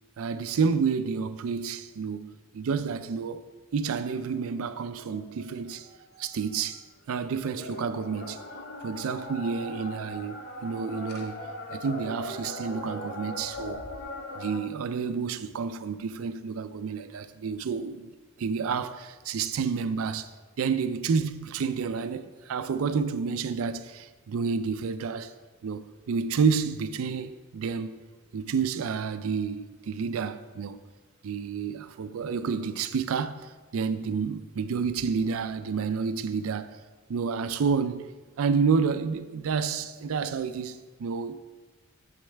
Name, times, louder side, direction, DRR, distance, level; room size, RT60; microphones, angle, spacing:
voice 1, 0.2-3.4 3.7-5.9 6.2-8.4 8.8-11.4 11.7-13.8 14.4-18.1 18.4-20.3 20.6-25.3 25.6-28.0 28.3-30.8 31.2-36.8 37.1-38.1 38.4-41.4, right 5 dB, 80° right, 0.4 m, -29 dB
sound 1, 3.8-6.8 7.2-14.6, left 1 dB, 50° left, 0.9 m, -40 dB
7.2 x 6.5 x 3.3 m
head